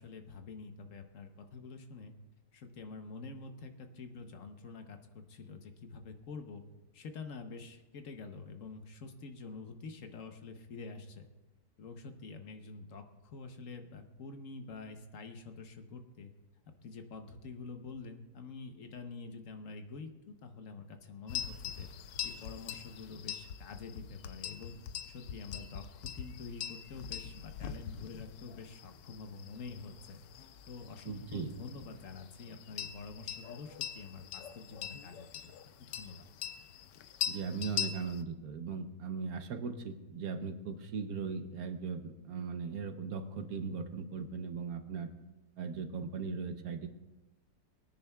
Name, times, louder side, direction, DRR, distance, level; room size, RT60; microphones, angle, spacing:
voice 1, 0.0-2.1 2.5-6.6 6.9-11.3 11.8-16.3 16.8-21.9 22.2-24.8 25.1-30.2 30.7-35.5 35.8-36.3, left 4 dB, 55° left, 6 dB, 1.0 m, -47 dB
sound 1, 21.3-38.2, left 9 dB, 80° left, 1.2 m, -43 dB
voice 2, 31.0-31.5 37.3-45.1 45.6-46.9, right 5 dB, 65° right, 8 dB, 1.1 m, -38 dB
22.0 x 9.9 x 2.3 m, 1.0 s
omnidirectional pair, 1.9 m